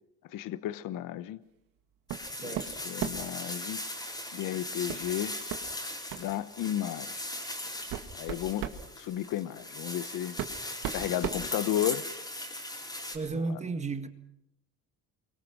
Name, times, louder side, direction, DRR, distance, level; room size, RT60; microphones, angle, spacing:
voice 1, 0.3-1.4 2.4-3.8 4.3-5.3 6.2-7.2 8.1-8.7 9.0-10.4 10.6-12.0 13.3-13.6, left 12 dB, 65° left, 1.1 m, -33 dB
sound 1, 2.1-13.2, left 1 dB, 10° left, 4.4 m, -39 dB
sound 2, 2.1-2.3 2.6-3.4 4.9-5.1 5.5-5.6 6.1-6.3 7.1-7.2 7.7-8.8 9.9-10.0 10.4-12.1, right 11 dB, 75° right, 2.3 m, -36 dB
voice 2, 2.4-2.9 13.1-14.1, right 3 dB, 20° right, 1.7 m, -34 dB
28.5 x 23.5 x 6.2 m
cardioid pair, 140°, 34 cm